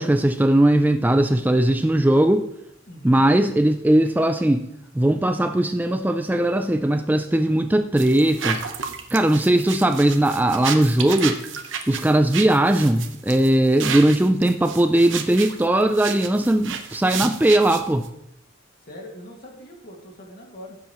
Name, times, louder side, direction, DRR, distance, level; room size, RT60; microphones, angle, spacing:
voice 1, 0.0-2.4 3.0-4.7 4.9-8.6 9.1-11.4 11.9-18.1, right 1 dB, 10° right, 7 dB, 0.4 m, -19 dB
voice 2, 2.9-3.2 18.8-20.8, equal, 50° left, 0 dB, 2.3 m, -42 dB
sound 1, 8.0-18.1, right 7 dB, 70° right, 1.0 m, -32 dB
15.5 x 7.3 x 3.1 m, 0.79 s
head